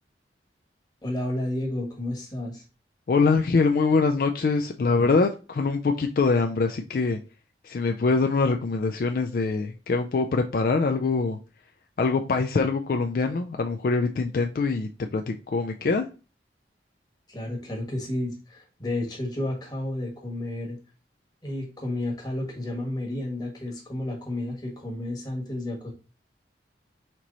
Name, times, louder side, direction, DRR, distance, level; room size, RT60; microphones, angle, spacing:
voice 1, 1.0-2.6 17.3-20.8 21.4-25.9, left 1 dB, 20° left, -1 dB, 1.3 m, -31 dB
voice 2, 3.1-7.2 7.6-11.4 12.0-16.1, left 4 dB, 55° left, 5 dB, 0.3 m, -24 dB
4.5 x 3.0 x 3.9 m, 0.33 s
head